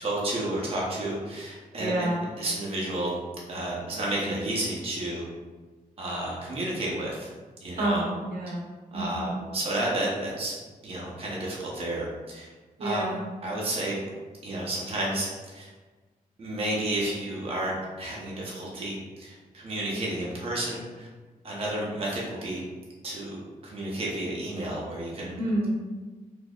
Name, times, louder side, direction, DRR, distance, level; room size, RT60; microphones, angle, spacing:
voice 1, 0.0-3.2 3.5-5.3 6.0-7.3 7.6-8.0 8.9-10.5 10.8-12.5 12.8-13.0 13.4-14.0 14.4-15.7 16.4-21.1 21.4-22.6 23.0-25.3, right 1 dB, 40° right, -4 dB, 0.7 m, -31 dB
voice 2, 1.8-2.2 7.8-8.6 8.9-9.3 12.8-13.2 25.4-25.7, right 1 dB, 85° right, -3 dB, 0.8 m, -28 dB
3.8 x 2.7 x 2.3 m, 1.3 s
wide cardioid pair, 175°, 15 cm